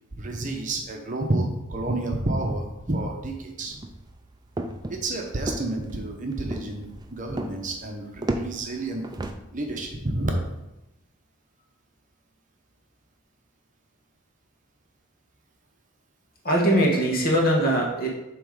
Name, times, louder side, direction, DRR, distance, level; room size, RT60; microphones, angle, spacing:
voice 1, 0.1-3.8 4.9-9.1 9.5-10.3, right 2 dB, 35° right, 1 dB, 0.8 m, -30 dB
sound 1, 3.7-9.3, right 1 dB, 20° right, 0.3 m, -34 dB
voice 2, 16.4-18.1, right 1 dB, 45° left, -1 dB, 1.4 m, -21 dB
7.5 x 3.1 x 4.9 m, 0.93 s
head